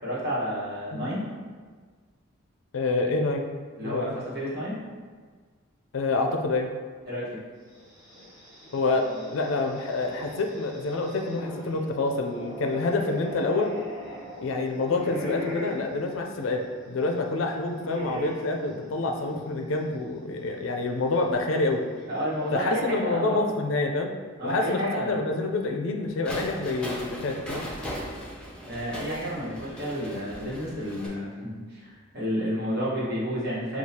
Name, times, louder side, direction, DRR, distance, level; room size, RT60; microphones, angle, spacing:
voice 1, 0.0-1.2 3.8-4.7 7.1-7.4 22.1-23.4 24.4-25.2 28.6-33.8, equal, 50° right, -8 dB, 1.3 m, -31 dB
voice 2, 2.7-3.5 3.8-4.1 5.9-6.7 8.7-13.7 14.4-21.8 22.5-24.1 24.4-27.7, left 3 dB, 65° left, 3 dB, 0.4 m, -27 dB
sound 1, 7.7-19.9 20.3-20.4 21.5-22.8, left 1 dB, 20° right, 1.0 m, -41 dB
sound 2, 26.2-31.1, equal, 5° left, 0.6 m, -38 dB
6.3 x 2.3 x 2.8 m, 1.5 s
head